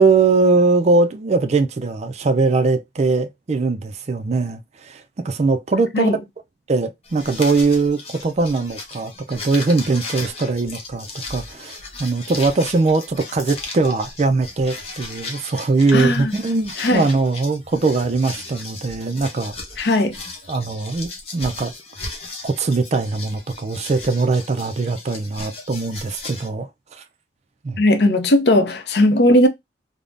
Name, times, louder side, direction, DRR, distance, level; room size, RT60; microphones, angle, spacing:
voice 1, 0.0-6.2 6.7-19.5 20.5-21.7 22.4-27.0 27.6-27.8, right 3 dB, 40° right, 0.4 m, -21 dB
sound 1, 7.0-26.5, left 3 dB, 35° left, 0.9 m, -36 dB
voice 2, 15.9-16.3 16.8-17.1 19.8-20.2 27.8-29.5, left 1 dB, 65° left, 0.6 m, -17 dB
3.5 x 2.1 x 2.5 m
head